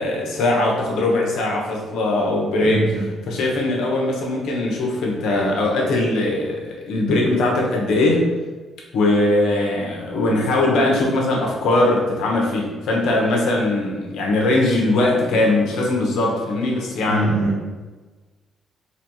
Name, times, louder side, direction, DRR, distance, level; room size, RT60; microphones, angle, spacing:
voice 1, 0.0-3.0 3.3-8.3 8.9-17.3, left 2 dB, 80° left, -2 dB, 0.9 m, -20 dB
voice 2, 2.6-3.0 17.1-17.8, right 2 dB, 65° right, -2 dB, 1.0 m, -22 dB
4.2 x 2.3 x 2.9 m, 1.3 s
cardioid pair, 90°, 0 cm